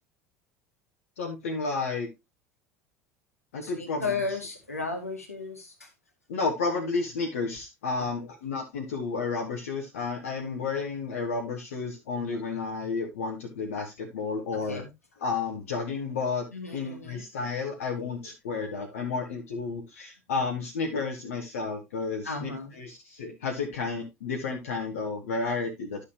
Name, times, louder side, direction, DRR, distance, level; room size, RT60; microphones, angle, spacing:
voice 1, 1.2-2.1 3.5-4.1 6.3-14.8 15.2-16.5 16.7-26.0, left 4 dB, 65° left, 2 dB, 1.5 m, -31 dB
voice 2, 3.6-5.9 14.7-14.9 16.5-17.2 22.2-22.7, left 4 dB, 85° left, 4 dB, 2.0 m, -34 dB
11.5 x 6.6 x 2.9 m, 0.21 s
figure-of-eight pair, 70°, 8 cm